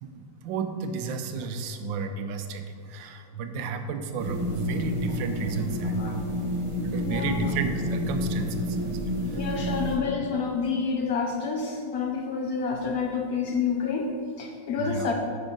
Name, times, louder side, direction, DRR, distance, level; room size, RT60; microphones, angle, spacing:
voice 1, 0.0-6.2 6.8-9.8 14.8-15.1, right 4 dB, 90° right, 7 dB, 1.4 m, -33 dB
sound 1, 4.2-10.0, left 1 dB, 35° right, 0.4 m, -29 dB
voice 2, 5.8-6.2 7.0-7.5 9.3-15.1, left 5 dB, 65° left, 2 dB, 0.9 m, -29 dB
6.0 x 5.7 x 5.1 m, 2.1 s
omnidirectional pair, 2.0 m